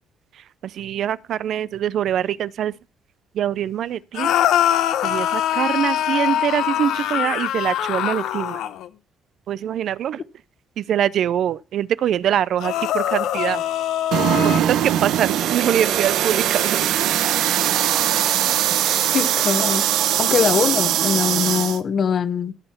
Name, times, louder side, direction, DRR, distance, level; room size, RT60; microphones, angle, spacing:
voice 1, 0.6-2.7 3.3-4.3 5.0-8.6 9.5-10.2 10.8-13.6 14.4-16.8, right 10 dB, 65° right, 0.4 m, -23 dB
sound 1, 4.1-8.9 12.6-14.6, left 11 dB, 85° left, 0.9 m, -23 dB
sound 2, 14.1-21.8, right 11 dB, 85° right, 0.9 m, -21 dB
voice 2, 19.1-19.8 20.2-22.5, left 7 dB, 45° left, 1.1 m, -22 dB
15.0 x 5.6 x 5.7 m
cardioid pair, 125°, 0 cm